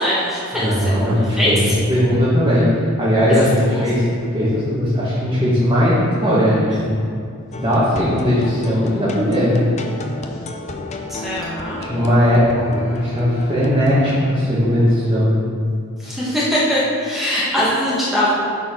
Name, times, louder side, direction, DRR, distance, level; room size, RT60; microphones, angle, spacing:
voice 1, 0.0-1.7 3.3-3.8 11.1-11.8 16.0-18.3, equal, ahead, -9 dB, 1.3 m, -22 dB
voice 2, 0.5-4.0 4.3-7.0 7.5-9.6 11.9-15.3, equal, 20° right, -10 dB, 1.4 m, -18 dB
sound 1, 7.5-14.2, left 2 dB, 30° left, 0.5 m, -32 dB
10.0 x 4.4 x 4.3 m, 2.4 s
head